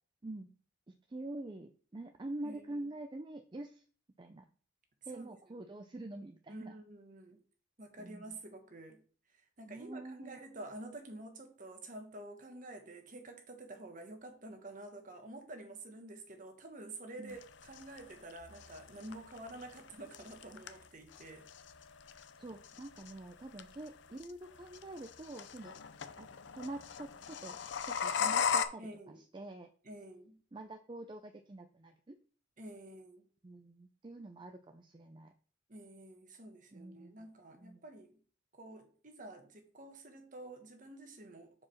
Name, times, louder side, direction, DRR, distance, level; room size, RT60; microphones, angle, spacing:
voice 1, 0.9-3.8 4.2-4.5 5.1-6.8 8.0-8.3 9.7-10.4 17.2-17.4 22.4-25.8 26.2-26.3 26.5-27.6 27.9-29.7 30.5-32.2 33.4-35.3 36.7-37.3 37.5-37.8, right 2 dB, 25° right, 6 dB, 0.4 m, -46 dB
voice 2, 2.4-2.9 5.1-5.7 6.5-7.4 7.8-9.0 9.6-21.5 28.8-29.2 29.8-30.4 32.6-33.3 35.7-38.2 38.5-41.7, right 2 dB, 40° right, 5 dB, 1.2 m, -49 dB
sound 1, 17.3-28.7, left 6 dB, 65° left, 0.5 m, -39 dB
4.8 x 4.8 x 5.6 m, 0.42 s
head